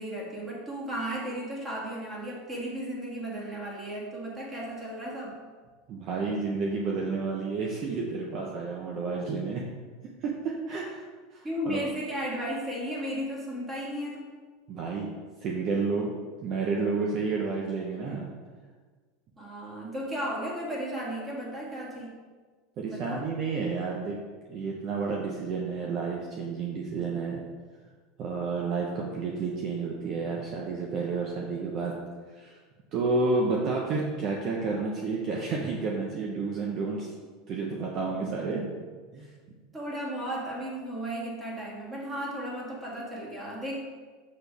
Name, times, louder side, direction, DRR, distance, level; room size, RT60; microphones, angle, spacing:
voice 1, 0.0-5.4 11.4-14.3 19.4-22.1 22.9-23.2 39.7-43.8, equal, 20° right, -4 dB, 2.4 m, -35 dB
voice 2, 5.9-9.6 10.2-11.0 11.3-11.8 14.7-15.1 15.4-16.1 16.4-18.2 22.8-24.2 24.5-27.4 28.2-31.9 32.4-32.6 32.9-37.1 37.5-38.7 39.1-39.3, right 4 dB, 45° right, -1 dB, 1.0 m, -30 dB
7.5 x 6.3 x 3.5 m, 1.4 s
supercardioid pair, 115°, 0 cm